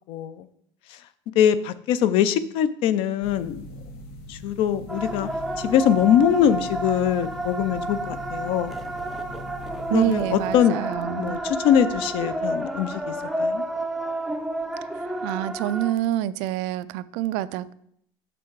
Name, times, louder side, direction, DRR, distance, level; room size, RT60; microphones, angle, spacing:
voice 1, 0.1-0.5 0.9-1.0 1.3-3.7 4.3-5.3 5.6-8.7 9.9-13.6, left 9 dB, 55° left, 0.5 m, -22 dB
sound 1, 3.2-10.6, left 1 dB, 75° left, 1.2 m, -41 dB
sound 2, 4.9-15.9, right 1 dB, ahead, 0.5 m, -30 dB
voice 2, 9.9-11.4 15.2-17.7, right 13 dB, 80° right, 0.4 m, -27 dB
6.5 x 6.0 x 4.6 m
cardioid pair, 170°, 11 cm